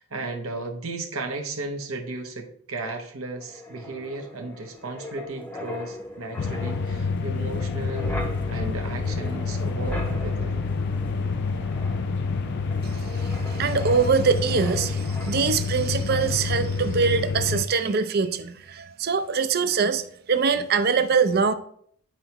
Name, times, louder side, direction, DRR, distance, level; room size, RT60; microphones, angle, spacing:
voice 1, 0.0-8.1 8.5-10.5, right 2 dB, 75° right, 1.1 m, -35 dB
Wind, 3.4-15.8 16.1-16.3, left 1 dB, 10° left, 0.8 m, -38 dB
sound 1, 6.4-17.6, left 4 dB, 50° left, 0.3 m, -28 dB
voice 2, 12.8-20.0 20.3-21.5, right 5 dB, 45° right, 0.5 m, -23 dB
10.0 x 4.6 x 3.0 m
head